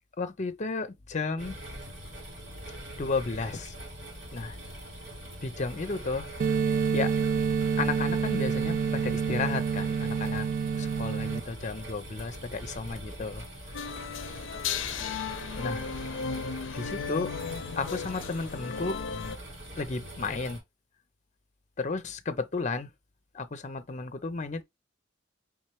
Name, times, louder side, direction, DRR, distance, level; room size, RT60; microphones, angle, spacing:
voice 1, 0.2-1.5 3.0-3.7 4.3-4.6 5.4-6.3 6.9-7.1 7.8-10.5 10.8-13.5 15.6-15.8 16.7-17.3 17.8-19.0 19.8-20.6 21.8-22.9 23.3-24.6, left 4 dB, 40° left, 0.6 m, -33 dB
sound 1, 1.4-20.6, equal, 80° right, 2.5 m, -43 dB
sound 2, 6.4-11.4, right 6 dB, 50° right, 0.3 m, -28 dB
sound 3, 13.7-19.4, left 6 dB, 85° left, 0.5 m, -35 dB
4.3 x 3.6 x 3.1 m
head